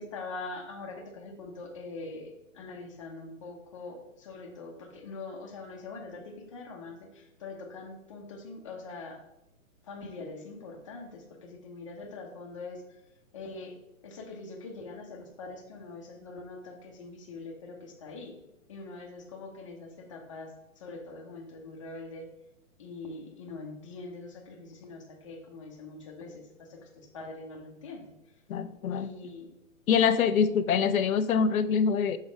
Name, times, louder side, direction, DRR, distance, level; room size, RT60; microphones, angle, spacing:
voice 1, 0.0-9.2 9.8-12.8 13.3-13.8 14.0-18.3 18.7-22.3 22.8-28.1 28.9-29.5, left 3 dB, 25° left, 1 dB, 0.8 m, -43 dB
voice 2, 28.5-29.1 29.9-32.2, left 6 dB, 80° left, 12 dB, 0.5 m, -25 dB
6.2 x 4.0 x 5.0 m, 0.87 s
hypercardioid pair, 170°, 41 cm